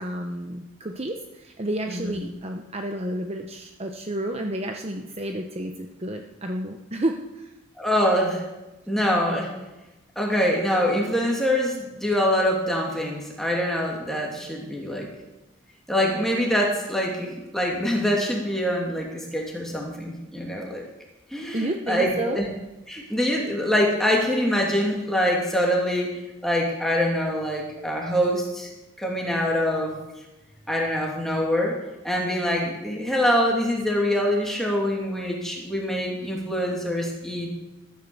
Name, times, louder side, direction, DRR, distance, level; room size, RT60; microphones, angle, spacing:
voice 1, 0.0-7.5 21.5-22.4, right 1 dB, 30° right, 4 dB, 0.9 m, -31 dB
voice 2, 1.9-2.2 7.8-8.4 8.9-9.5 10.2-15.1 15.9-20.8 21.3-22.4 22.9-28.7 29.0-30.0 30.7-31.8 32.0-37.5, equal, ahead, -2 dB, 2.8 m, -24 dB
14.5 x 10.5 x 7.1 m, 1.0 s
head